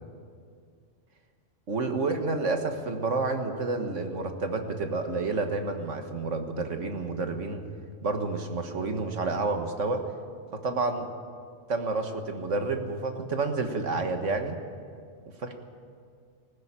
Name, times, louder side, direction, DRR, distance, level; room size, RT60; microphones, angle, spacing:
voice 1, 1.7-7.6 8.0-10.0 10.5-11.1 11.7-14.6 15.4-15.5, right 3 dB, 70° right, 5 dB, 1.9 m, -29 dB
19.5 x 15.5 x 8.9 m, 2.2 s
omnidirectional pair, 1.3 m